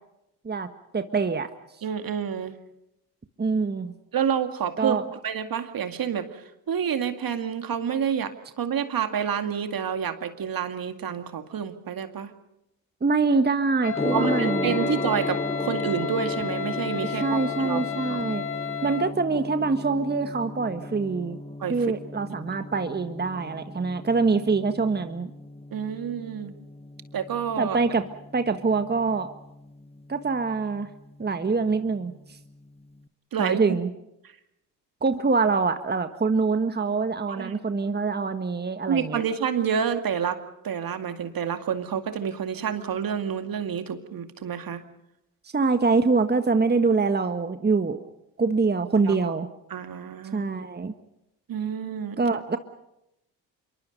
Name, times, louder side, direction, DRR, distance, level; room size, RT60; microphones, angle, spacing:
voice 1, 0.9-1.5 3.4-3.9 4.8-5.0 13.0-14.8 17.2-18.4 18.8-21.4 21.7-25.3 27.6-28.0 28.3-29.3 30.1-30.9 31.2-32.1 33.4-33.9 35.0-39.2 45.5-48.0 48.4-49.5 50.3-50.9 52.2-52.6, right 4 dB, 20° right, 9 dB, 1.5 m, -24 dB
voice 2, 1.8-2.5 4.1-5.0 5.2-12.3 14.1-17.8 18.1-18.3 21.6-21.8 25.7-26.5 27.1-27.8 33.3-33.6 37.3-37.6 38.9-40.4 40.6-44.8 49.0-49.3 49.7-50.5 51.5-52.2, right 7 dB, 50° right, 8 dB, 2.2 m, -29 dB
Wind instrument woodwind instrument, 13.8-19.2, left 8 dB, 30° left, 0.8 m, -32 dB
Gong, 13.9-33.0, left 1 dB, 15° left, 1.4 m, -35 dB
26.5 x 23.5 x 5.4 m, 0.85 s
hypercardioid pair, 50°, 44 cm